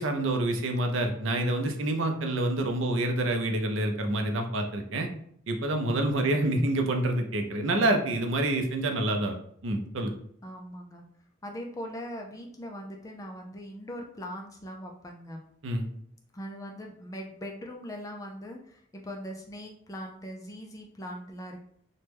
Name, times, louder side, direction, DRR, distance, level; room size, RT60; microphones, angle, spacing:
voice 1, 0.0-5.1 5.5-9.3 9.6-10.1 15.6-15.8, right 1 dB, 75° right, 4 dB, 0.5 m, -27 dB
voice 2, 6.2-6.7 10.4-11.0 11.4-15.4 16.3-21.6, equal, 15° left, 1 dB, 0.3 m, -41 dB
3.0 x 2.2 x 3.3 m, 0.65 s
head